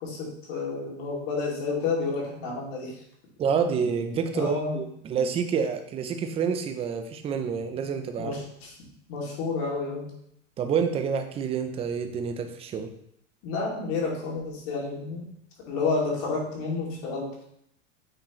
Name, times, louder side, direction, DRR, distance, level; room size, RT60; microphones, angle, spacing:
voice 1, 0.0-2.9 4.3-4.8 8.2-8.7 9.1-10.0 13.4-15.2 15.7-17.3, left 4 dB, 55° left, -2 dB, 2.6 m, -30 dB
voice 2, 3.4-8.4 10.6-12.9, right 6 dB, 15° right, 7 dB, 0.4 m, -28 dB
8.8 x 4.4 x 3.0 m, 0.73 s
supercardioid pair, 140°, 39 cm